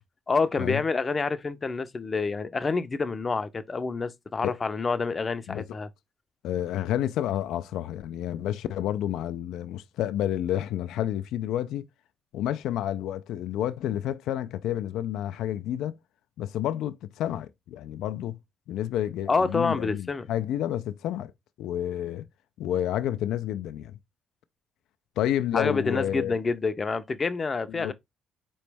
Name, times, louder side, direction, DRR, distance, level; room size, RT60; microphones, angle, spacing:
voice 1, 0.3-5.9 19.3-20.3 25.5-27.9, left 4 dB, 30° left, 0.5 m, -27 dB
voice 2, 6.4-11.9 12.3-16.0 16.4-18.4 18.7-21.3 21.6-22.2 22.6-24.0 25.2-26.4 27.7-27.9, left 11 dB, 85° left, 0.3 m, -30 dB
4.3 x 3.1 x 3.3 m
cardioid pair, 90°, 0 cm